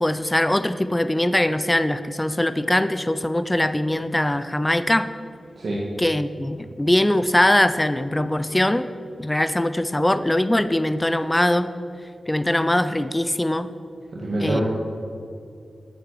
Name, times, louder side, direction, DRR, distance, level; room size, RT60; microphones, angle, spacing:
voice 1, 0.0-5.1 6.0-8.9 9.2-11.7 12.3-13.7 14.4-14.6, left 1 dB, 15° left, 12 dB, 0.5 m, -21 dB
voice 2, 14.1-14.6, right 1 dB, 65° right, -5 dB, 2.0 m, -26 dB
11.0 x 9.4 x 6.8 m, 2.5 s
cardioid pair, 75°, 0 cm